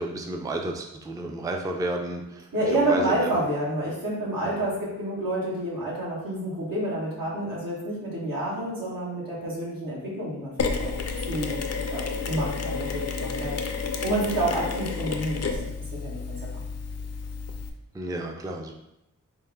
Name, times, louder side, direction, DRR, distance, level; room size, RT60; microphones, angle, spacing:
voice 1, 0.0-3.3 4.4-4.6 17.9-18.7, right 2 dB, 10° right, 2 dB, 0.3 m, -32 dB
voice 2, 2.5-10.9 11.3-11.6 11.9-13.5 14.0-15.6 16.0-16.6, right 1 dB, 85° right, -7 dB, 1.5 m, -29 dB
Mechanisms, 10.6-17.7, left 4 dB, 50° left, 0.4 m, -31 dB
4.3 x 2.0 x 3.4 m, 0.87 s
wide cardioid pair, 80°, 32 cm